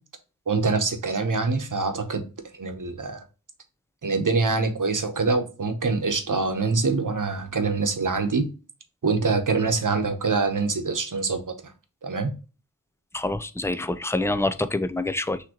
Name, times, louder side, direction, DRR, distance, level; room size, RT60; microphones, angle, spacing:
voice 1, 0.5-2.2 2.6-3.2 4.0-8.5 9.0-11.5 12.0-12.3, right 4 dB, 65° right, 0.9 m, -24 dB
voice 2, 13.1-15.5, left 2 dB, 10° left, 0.4 m, -26 dB
6.2 x 2.9 x 2.9 m
wide cardioid pair, 60°, 33 cm